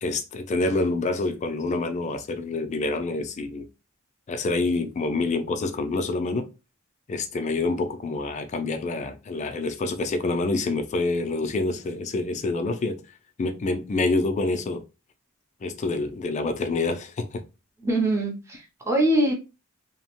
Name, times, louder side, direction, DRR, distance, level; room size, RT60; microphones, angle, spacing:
voice 1, 0.0-3.7 4.3-6.5 7.1-13.0 13.4-14.8 15.6-17.4, left 3 dB, 35° left, 0.4 m, -27 dB
voice 2, 17.8-19.3, right 1 dB, 15° right, 0.6 m, -23 dB
2.8 x 2.1 x 2.8 m
head